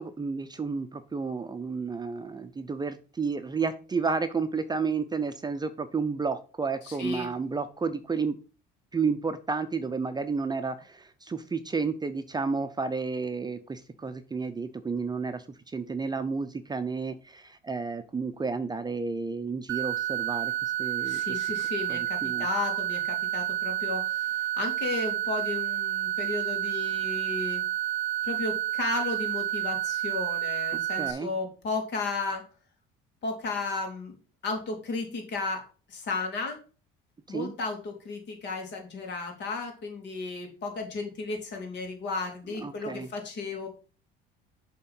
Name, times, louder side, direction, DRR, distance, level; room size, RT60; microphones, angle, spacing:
voice 1, 0.0-8.3 8.9-20.5 20.8-21.2 21.9-22.5 31.0-31.3 37.3-37.5 42.6-43.1, right 4 dB, 20° right, 10 dB, 0.6 m, -31 dB
voice 2, 6.8-7.3 21.0-27.6 28.2-32.4 33.2-34.1 34.4-36.6 37.3-43.7, left 3 dB, 55° left, 3 dB, 2.6 m, -34 dB
sound 1, 19.7-31.1, right 13 dB, 75° right, 0.7 m, -30 dB
6.7 x 3.7 x 5.6 m, 0.36 s
supercardioid pair, 95°, 21 cm